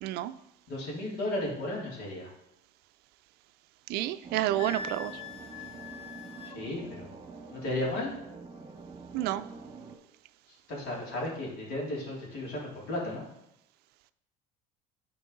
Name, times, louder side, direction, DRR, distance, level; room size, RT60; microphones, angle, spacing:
voice 1, 0.0-0.3 3.9-5.2 9.1-9.5, right 13 dB, 65° right, 13 dB, 0.4 m, -30 dB
voice 2, 0.7-2.3 6.5-7.1 7.5-8.1 10.7-13.2, left 1 dB, 65° left, -3 dB, 3.1 m, -34 dB
sound 1, 4.2-10.0, right 4 dB, 30° right, 1.2 m, -46 dB
Wind instrument woodwind instrument, 4.6-6.6, left 5 dB, 35° left, 0.5 m, -42 dB
11.0 x 4.5 x 4.0 m, 0.83 s
cardioid pair, 120°, 18 cm